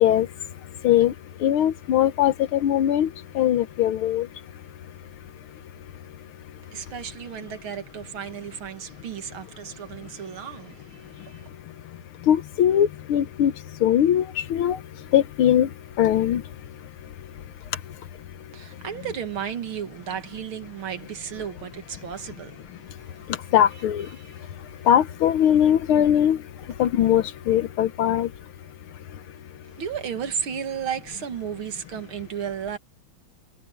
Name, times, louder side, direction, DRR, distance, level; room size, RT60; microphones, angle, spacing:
voice 1, 1.4-3.1 3.4-4.3 12.3-13.5 13.8-14.8 15.1-15.7 16.0-16.4 23.5-24.1 24.9-26.4 26.8-28.3, left 10 dB, 85° left, 1.8 m, -20 dB
voice 2, 6.6-11.5 18.5-23.3 24.2-24.9 26.7-26.8 29.6-32.8, right 8 dB, 80° right, 2.6 m, -34 dB
omnidirectional pair, 2.3 m